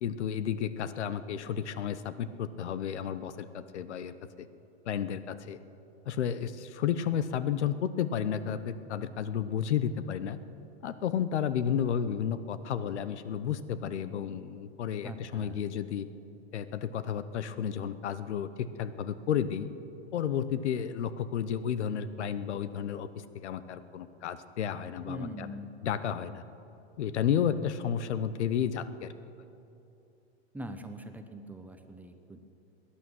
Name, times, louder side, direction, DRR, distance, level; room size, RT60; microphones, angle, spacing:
voice 1, 0.0-4.5 4.9-5.6 6.1-10.4 10.8-16.1 16.5-19.7 20.1-23.1 23.4-25.5 25.8-26.4 27.0-29.1, left 8 dB, 85° left, 14 dB, 0.8 m, -32 dB
voice 2, 15.0-15.6 25.0-25.8 30.5-32.4, equal, 5° right, 6 dB, 0.7 m, -42 dB
18.0 x 10.0 x 6.2 m, 2.8 s
hypercardioid pair, 130°, 33 cm